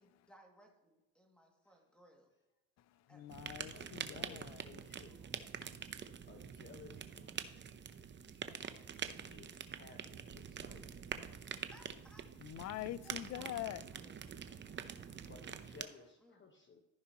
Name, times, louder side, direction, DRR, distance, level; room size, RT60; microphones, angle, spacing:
voice 1, 0.0-2.3 3.1-3.4 4.6-5.4 11.4-12.3 13.0-14.6 16.2-16.5, equal, 5° left, 2.2 m, -64 dB
voice 2, 2.8-4.6 12.4-13.8 14.6-15.3, left 14 dB, 50° left, 0.5 m, -45 dB
sound 1, 3.3-15.8, right 7 dB, 30° right, 0.7 m, -46 dB
voice 3, 3.7-5.2 6.3-7.7 9.3-11.0 11.4-11.6 15.2-16.8, left 4 dB, 30° left, 1.2 m, -58 dB
14.5 x 5.6 x 2.9 m
supercardioid pair, 90°, 35 cm